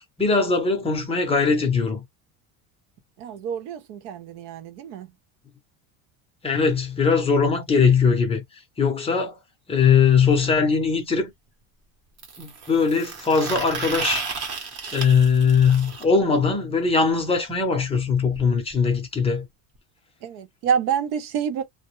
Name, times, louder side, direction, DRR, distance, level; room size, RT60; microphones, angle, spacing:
voice 1, 0.0-2.0 6.4-8.4 8.8-9.4 9.7-11.3 12.4-14.3 14.9-19.5, left 5 dB, 15° left, 0.6 m, -20 dB
voice 2, 3.2-5.1 20.2-21.6, right 7 dB, 75° right, 0.8 m, -27 dB
sound 1, 10.2-10.3 12.2-16.0 17.9-18.0 18.3-18.4 18.7-18.8 19.8-19.9, right 5 dB, 40° right, 0.9 m, -33 dB
2.2 x 2.0 x 3.0 m
cardioid pair, 155°, 39 cm